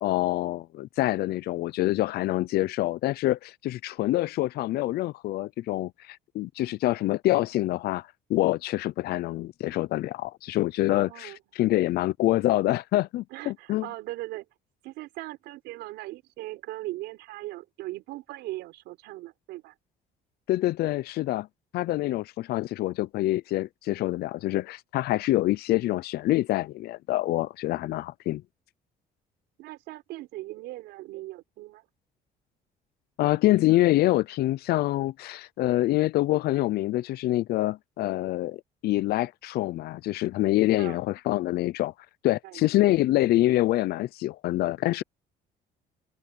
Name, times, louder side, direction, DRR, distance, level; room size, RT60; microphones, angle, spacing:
voice 1, 0.0-13.9 20.5-21.5 21.7-28.4 33.2-41.9 42.2-45.0, left 16 dB, 70° left, 0.5 m, -26 dB
voice 2, 10.9-11.4 13.3-14.4 14.8-19.7 27.7-28.0 29.6-31.8 40.8-41.0 42.4-42.6, right 18 dB, 90° right, 4.9 m, -39 dB
open air
cardioid pair, 110°, 17 cm